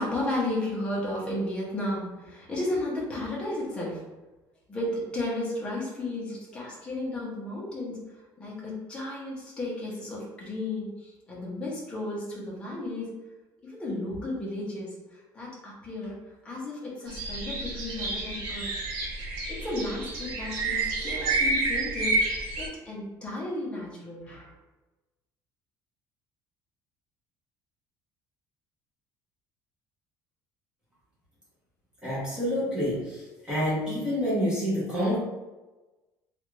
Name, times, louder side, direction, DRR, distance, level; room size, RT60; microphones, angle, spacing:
voice 1, 0.0-4.0 4.7-13.2 13.6-18.7 19.5-24.5, left 1 dB, 15° left, -5 dB, 0.9 m, -34 dB
sound 1, 17.1-22.7, right 3 dB, 75° right, 1.1 m, -29 dB
voice 2, 32.0-35.2, equal, 10° right, -9 dB, 1.1 m, -28 dB
3.2 x 2.5 x 3.1 m, 1.1 s
cardioid pair, 175°, 8 cm